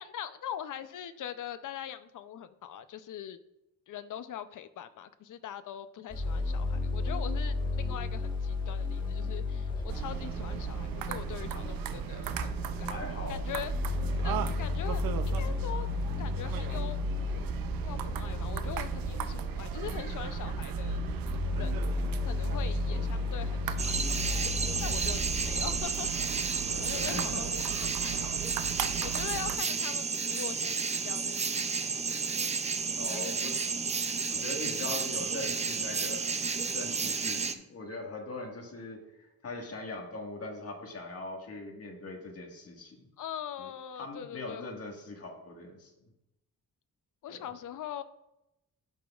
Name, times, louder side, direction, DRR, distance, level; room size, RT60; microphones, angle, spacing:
voice 1, 0.0-3.4 3.9-12.9 13.3-14.0 14.2-15.9 16.2-17.0 17.3-21.0 21.6-21.9 22.3-24.4 24.8-26.1 26.5-28.4 29.0-32.5 33.1-33.3 34.8-35.0 43.2-44.7 47.2-48.0, left 10 dB, 65° left, 12 dB, 0.5 m, -42 dB
sound 1, 6.1-25.8, left 2 dB, 15° left, 1.3 m, -33 dB
sound 2, 9.9-29.6, right 11 dB, 90° right, 0.5 m, -38 dB
voice 2, 12.9-13.4 26.7-27.4 32.9-33.8 34.3-36.3 36.6-39.0 39.4-43.1 43.6-43.7 44.0-45.9 47.3-47.5, left 2 dB, 45° left, 1 dB, 1.6 m, -41 dB
sound 3, 23.8-37.5, right 5 dB, 20° right, 0.4 m, -32 dB
11.5 x 6.1 x 2.4 m, 0.89 s
wide cardioid pair, 130°, 34 cm